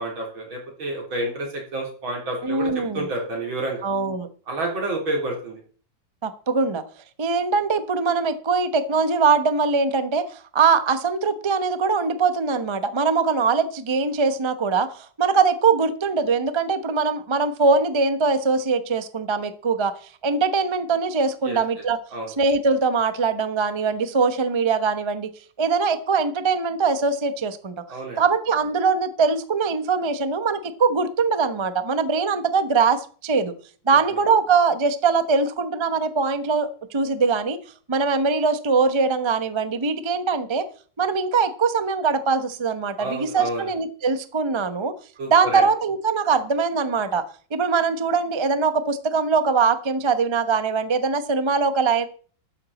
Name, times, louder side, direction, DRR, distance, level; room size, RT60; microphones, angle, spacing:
voice 1, 0.0-3.8 4.5-5.6 21.4-21.6 22.1-22.3 27.9-28.2 43.0-43.7 45.2-45.7, right 2 dB, 80° right, 0 dB, 4.6 m, -29 dB
voice 2, 2.4-3.1 3.8-4.3 6.2-6.8 7.2-19.9 20.2-22.0 22.4-25.3 25.6-27.7 28.2-33.5 33.9-37.6 37.9-40.6 41.0-44.9 45.3-47.2 47.5-52.1, right 4 dB, 35° right, 10 dB, 0.4 m, -22 dB
13.0 x 10.0 x 4.2 m, 0.42 s
omnidirectional pair, 2.1 m